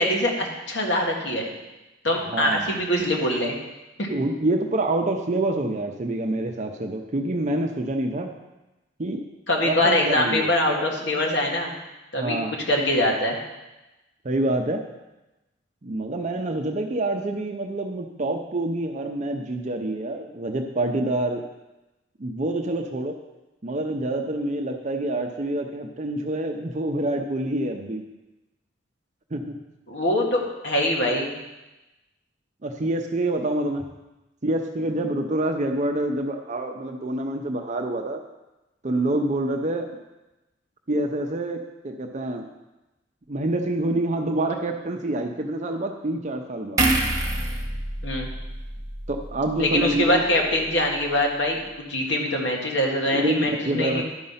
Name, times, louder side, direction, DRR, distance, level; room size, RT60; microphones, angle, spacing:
voice 1, 0.0-1.5 2.0-3.6 4.0-4.1 9.5-11.7 12.1-12.4 12.7-13.4 29.9-31.3 48.0-48.3 49.6-54.0, left 1 dB, 70° left, 0 dB, 1.8 m, -23 dB
voice 2, 2.3-2.7 4.1-8.3 9.0-9.2 9.6-10.5 12.2-12.5 14.2-14.8 15.8-21.4 22.2-23.1 23.6-28.0 29.3-29.6 32.6-33.8 34.4-38.2 38.8-40.0 40.9-42.5 43.3-46.9 49.1-50.2 53.1-54.0, right 1 dB, 40° right, 3 dB, 0.6 m, -26 dB
sound 1, 46.8-50.1 50.5-50.7, right 2 dB, 20° right, 1.4 m, -27 dB
11.5 x 5.3 x 5.6 m, 1.0 s
head